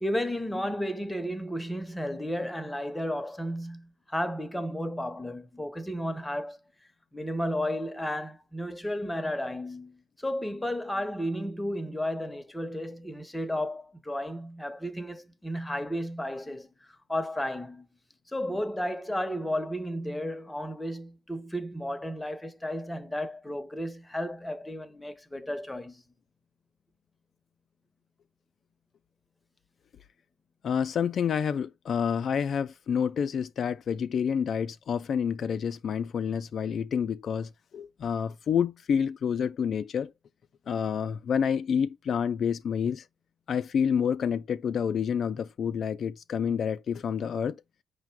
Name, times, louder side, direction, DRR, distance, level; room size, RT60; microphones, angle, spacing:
voice 1, 0.0-6.6 7.1-16.7 17.1-17.9 18.3-26.0, equal, 10° left, 0.7 m, -33 dB
voice 2, 30.6-40.1 40.7-43.1 43.5-47.6, left 7 dB, 55° left, 0.3 m, -28 dB
4.8 x 2.1 x 4.5 m
cardioid pair, 90°, 0 cm